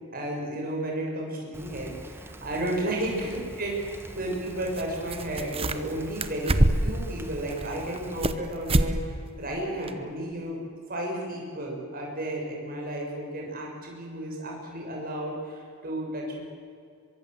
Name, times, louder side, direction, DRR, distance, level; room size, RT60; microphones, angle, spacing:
voice 1, 0.1-10.6 10.9-16.4, right 1 dB, 40° right, -1 dB, 6.6 m, -33 dB
Rain, 1.5-8.2, right 1 dB, 10° right, 1.5 m, -44 dB
sound 1, 4.7-4.8 5.1-5.9 6.2-7.0 7.5-8.4 8.7-8.9 9.3-9.4 9.9-10.0, right 1 dB, 25° right, 1.1 m, -24 dB
23.5 x 23.0 x 8.0 m, 2.3 s
head